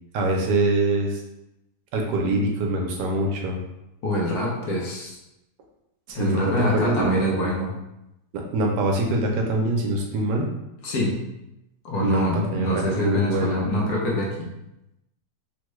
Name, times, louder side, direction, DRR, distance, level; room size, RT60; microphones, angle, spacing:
voice 1, 0.1-1.2 1.9-3.6 6.1-7.7 8.3-10.5 12.0-13.7, right 2 dB, 75° right, 1 dB, 1.2 m, -24 dB
voice 2, 4.0-5.2 6.1-7.7 10.8-11.2 11.8-14.5, equal, 65° left, -3 dB, 1.1 m, -25 dB
3.5 x 2.1 x 3.1 m, 0.89 s
omnidirectional pair, 1.8 m